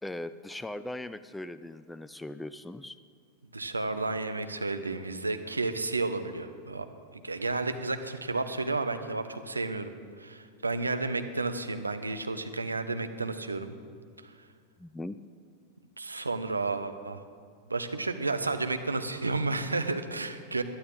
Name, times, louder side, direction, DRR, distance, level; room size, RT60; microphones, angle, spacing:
voice 1, 0.0-3.0 14.8-15.2, left 1 dB, 5° left, 14 dB, 0.4 m, -39 dB
voice 2, 3.5-6.9 7.1-13.7 16.0-17.2 17.7-20.6, right 3 dB, 80° right, 8 dB, 0.8 m, -32 dB
21.5 x 11.5 x 3.9 m, 2.1 s
figure-of-eight pair, 90°, 0 cm